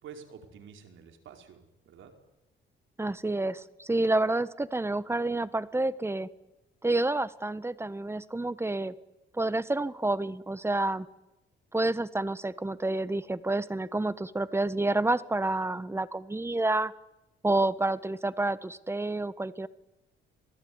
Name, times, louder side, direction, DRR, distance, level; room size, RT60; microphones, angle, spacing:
voice 1, 0.0-2.1, right 7 dB, 75° right, 5 dB, 5.0 m, -49 dB
voice 2, 3.0-6.3 6.8-8.9 9.3-11.1 11.7-16.9 17.4-19.7, right 2 dB, 10° right, 16 dB, 1.3 m, -29 dB
27.5 x 19.0 x 9.7 m, 0.97 s
cardioid pair, 90°, 20 cm